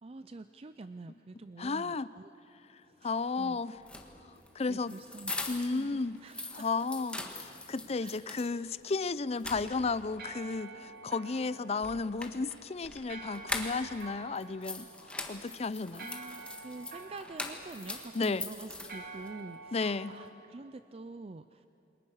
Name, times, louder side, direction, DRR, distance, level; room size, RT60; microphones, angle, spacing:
voice 1, 0.0-2.3 2.9-3.6 4.7-5.3 5.7-6.9 8.0-8.3 15.9-21.7, right 3 dB, 35° right, 11 dB, 0.5 m, -47 dB
voice 2, 1.6-2.1 2.7-3.8 4.2-5.0 5.5-6.2 6.5-16.1 18.1-18.5 19.7-20.1, left 4 dB, 35° left, 17 dB, 0.5 m, -33 dB
sound 1, 2.6-20.3, right 3 dB, 55° right, 2.4 m, -51 dB
sound 2, 3.8-5.8 6.2-8.5 8.9-9.0 9.3-10.1 11.8-14.0 14.3-19.3, left 2 dB, 5° left, 1.6 m, -42 dB
28.5 x 22.5 x 6.5 m, 2.9 s
head